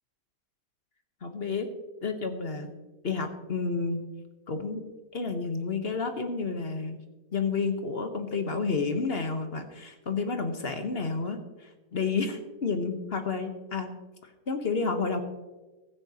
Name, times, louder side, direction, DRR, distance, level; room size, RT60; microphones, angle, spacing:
voice 1, 1.2-1.7 2.0-2.7 3.0-4.0 4.5-4.8 5.1-7.0 7.3-13.9 14.5-15.2, left 4 dB, 40° left, 6 dB, 1.2 m, -30 dB
16.0 x 14.0 x 2.9 m, 1.2 s
omnidirectional pair, 1.9 m